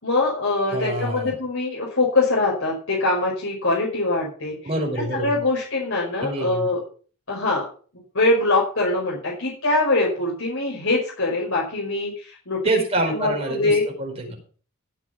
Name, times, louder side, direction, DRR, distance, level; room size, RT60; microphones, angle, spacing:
voice 1, 0.0-4.6 5.1-6.8 7.3-7.7 8.1-12.7 13.1-13.8, left 2 dB, 65° left, -4 dB, 5.5 m, -23 dB
voice 2, 0.7-1.3 4.6-5.4 6.2-6.7 12.6-14.4, right 1 dB, 30° right, 1 dB, 5.2 m, -26 dB
17.0 x 7.9 x 5.9 m, 0.42 s
head